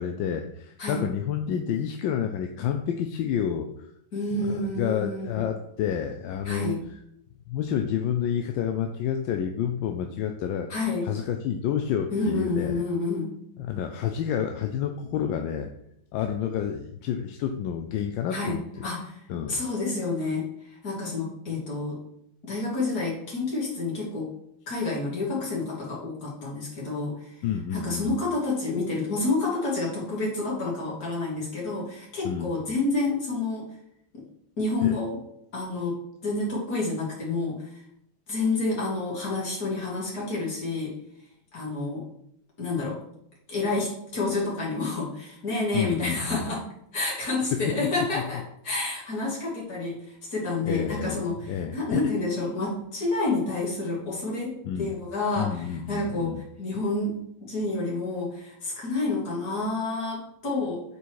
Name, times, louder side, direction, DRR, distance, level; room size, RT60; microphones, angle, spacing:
voice 1, 0.0-3.7 4.3-6.7 7.5-10.7 11.0-12.8 13.6-15.7 16.1-18.6 19.3-19.6 27.4-28.1 32.2-32.5 34.8-35.0 45.7-46.5 47.5-47.6 48.2-48.3 50.7-51.2 51.5-52.0 54.6-54.9 55.4-56.4, left 9 dB, 85° left, 5 dB, 1.3 m, -29 dB
voice 2, 4.1-5.4 6.4-6.8 10.7-11.1 12.1-13.3 18.3-19.2 19.5-22.0 22.4-24.3 24.7-27.3 27.7-33.6 34.1-34.2 34.6-35.2 35.5-37.8 38.3-41.0 41.5-42.0 42.6-43.0 43.5-46.7 46.9-57.2 57.4-60.8, left 3 dB, 55° left, -5 dB, 3.0 m, -29 dB
8.1 x 4.2 x 4.7 m, 0.74 s
omnidirectional pair, 2.0 m